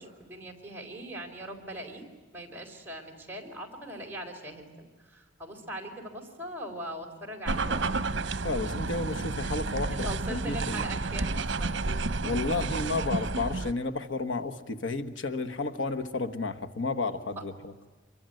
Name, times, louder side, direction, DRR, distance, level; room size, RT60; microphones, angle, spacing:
voice 1, 0.0-2.0 2.3-8.1 9.9-11.8, right 1 dB, 10° right, 0 dB, 4.4 m, -41 dB
sound 1, 7.5-13.7, right 3 dB, 70° right, 1.0 m, -31 dB
voice 2, 8.4-10.9 12.2-17.9, left 3 dB, 80° left, 8 dB, 1.4 m, -32 dB
26.5 x 23.0 x 9.2 m, 1.3 s
head